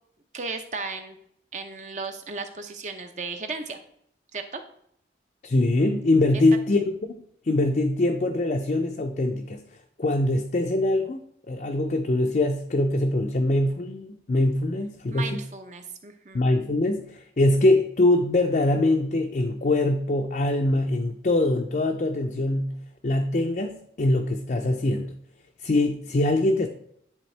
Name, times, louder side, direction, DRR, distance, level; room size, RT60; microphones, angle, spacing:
voice 1, 0.3-1.2 1.5-3.8 4.3-4.6 6.3-6.4 15.1-16.4, right 4 dB, 40° right, 6 dB, 0.7 m, -35 dB
voice 2, 5.4-9.6 10.0-11.2 11.5-15.4 16.3-22.8 23.0-25.1 25.6-26.7, left 2 dB, 45° left, 2 dB, 0.5 m, -23 dB
10.5 x 3.6 x 3.3 m, 0.70 s
head